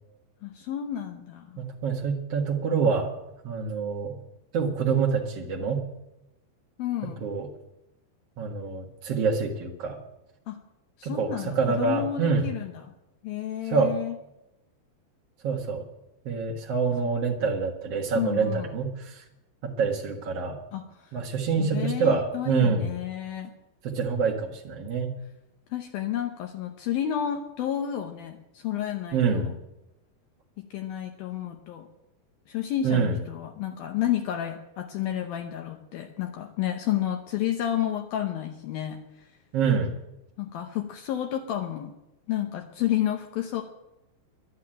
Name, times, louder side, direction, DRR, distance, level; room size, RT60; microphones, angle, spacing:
voice 1, 0.4-1.6 6.8-7.3 10.5-10.6 11.0-12.9 13.2-14.2 18.2-18.7 20.7-21.2 21.6-23.5 25.7-29.5 30.6-31.9 32.5-39.3 40.4-41.9 42.3-43.6, left 11 dB, 80° left, 5 dB, 2.1 m, -31 dB
voice 2, 1.6-3.1 3.4-4.2 4.5-5.8 7.2-7.5 8.4-10.0 11.0-12.4 13.7-13.9 15.4-15.8 16.2-19.2 19.6-20.6 21.1-22.9 23.8-25.1 29.1-29.5 32.8-33.2 39.5-39.9, right 5 dB, 80° right, -2 dB, 1.3 m, -26 dB
12.0 x 11.5 x 8.9 m, 0.92 s
omnidirectional pair, 5.4 m